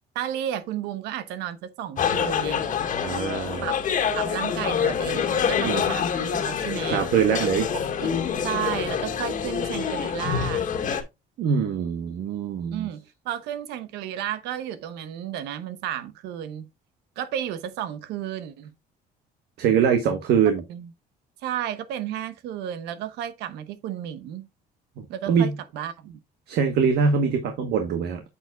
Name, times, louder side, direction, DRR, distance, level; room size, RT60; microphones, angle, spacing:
voice 1, 0.1-2.7 3.6-3.7 4.2-7.0 7.4-7.7 8.0-8.1 8.4-10.7 12.7-16.7 17.2-18.7 20.7-20.9 21.4-24.5 25.1-26.2, right 11 dB, 90° right, 1.0 m, -32 dB
sound 1, 2.0-11.0, left 7 dB, 50° left, 1.7 m, -26 dB
voice 2, 3.0-3.7 5.6-5.8 6.9-7.7 11.4-12.9 19.6-20.6 25.0-25.5 26.5-28.2, right 7 dB, 75° right, 1.3 m, -23 dB
8.8 x 7.1 x 2.3 m
cardioid pair, 110°, 17 cm